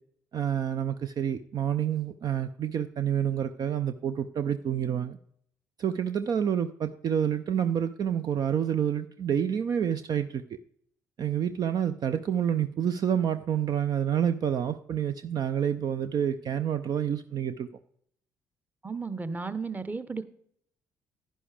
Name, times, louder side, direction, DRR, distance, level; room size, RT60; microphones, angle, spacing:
voice 1, 0.3-5.2 5.8-10.6 11.2-17.7, right 9 dB, 45° right, 9 dB, 0.5 m, -28 dB
voice 2, 18.8-20.2, right 4 dB, 20° right, 13 dB, 1.0 m, -34 dB
11.0 x 10.0 x 3.4 m, 0.67 s
hypercardioid pair, 50°, 9 cm